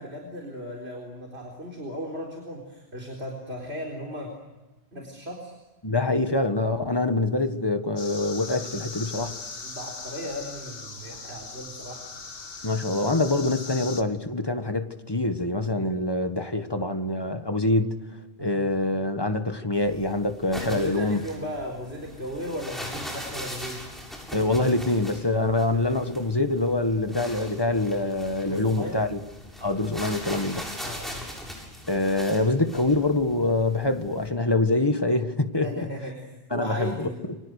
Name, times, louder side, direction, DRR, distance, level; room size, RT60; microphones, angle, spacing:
voice 1, 0.0-4.4 4.9-5.5 9.6-12.0 15.7-15.9 18.4-18.6 20.6-23.9 25.6-25.7 28.4-29.0 30.8-31.3 35.6-37.2, equal, 70° right, 0 dB, 4.4 m, -36 dB
voice 2, 5.8-9.3 12.6-18.0 18.4-21.2 24.3-29.2 29.6-30.7 31.9-35.9 36.5-37.4, left 2 dB, 20° left, 7 dB, 1.7 m, -25 dB
sound 1, 8.0-14.0, left 4 dB, 60° left, 1.8 m, -39 dB
sound 2, 19.7-34.3, equal, ahead, 7.8 m, -40 dB
29.5 x 25.5 x 6.6 m, 1.1 s
omnidirectional pair, 1.1 m